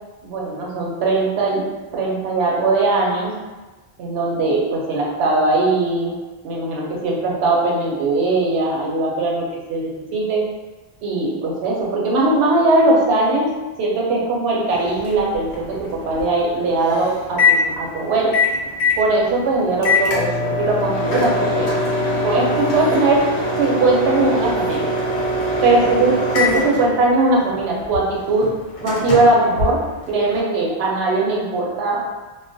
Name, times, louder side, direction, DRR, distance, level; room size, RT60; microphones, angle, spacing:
voice 1, 0.2-1.7 1.9-3.3 4.0-6.2 6.4-10.4 11.0-13.5 13.8-18.3 19.0-21.7 22.2-23.3 23.6-24.9 25.6-28.5 28.8-29.8 30.1-32.0, right 2 dB, 80° right, -3 dB, 0.8 m, -19 dB
Microwave oven, 14.7-30.4, left 2 dB, 80° left, 0.9 m, -23 dB
2.2 x 2.2 x 2.5 m, 1.2 s
omnidirectional pair, 1.1 m